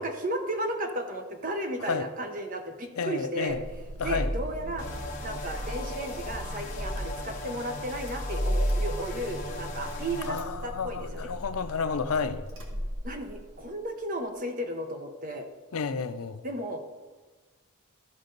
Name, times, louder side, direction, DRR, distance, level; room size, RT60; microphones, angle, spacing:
voice 1, 0.0-3.6 4.0-4.9 5.2-11.3 13.0-15.5 16.4-16.8, right 1 dB, 40° right, 0.9 m, -34 dB
voice 2, 3.0-3.7 4.0-4.3 10.3-12.4 15.7-16.4, left 5 dB, 85° left, 0.5 m, -31 dB
Car / Engine starting, 3.5-13.5, equal, 65° right, 1.5 m, -34 dB
sound 1, 4.8-10.3, left 2 dB, 35° left, 1.3 m, -39 dB
13.5 x 5.2 x 3.9 m
head